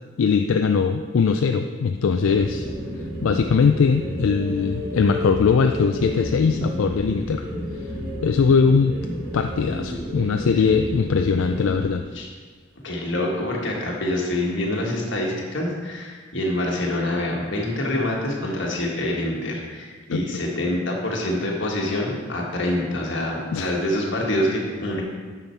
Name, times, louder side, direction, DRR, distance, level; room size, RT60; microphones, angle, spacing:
voice 1, 0.2-2.7 3.2-7.5 8.2-9.0 9.3-12.1 20.1-20.2 23.5-23.7, left 5 dB, 85° left, 6 dB, 0.4 m, -20 dB
Granular Synthesis Crazy Sound, 2.2-11.9, equal, 50° right, 2.5 m, -31 dB
voice 2, 12.8-25.0, left 1 dB, 65° left, -1 dB, 1.7 m, -26 dB
8.9 x 5.8 x 4.6 m, 1.5 s
head